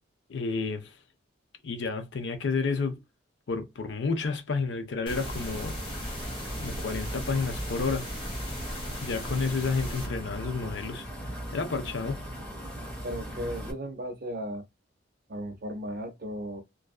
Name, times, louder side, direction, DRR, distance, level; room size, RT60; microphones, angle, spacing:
voice 1, 0.3-0.9 1.6-3.0 3.5-5.8 6.0-6.2 6.6-8.1 9.0-11.1 11.5-12.2, left 4 dB, 70° left, 0.5 m, -30 dB
sound 1, 5.1-10.1, equal, 25° left, 1.1 m, -38 dB
sound 2, 5.1-13.7, equal, 10° left, 1.3 m, -38 dB
voice 2, 13.0-14.6 15.3-16.6, equal, 50° right, 0.5 m, -36 dB
2.5 x 2.3 x 2.3 m
head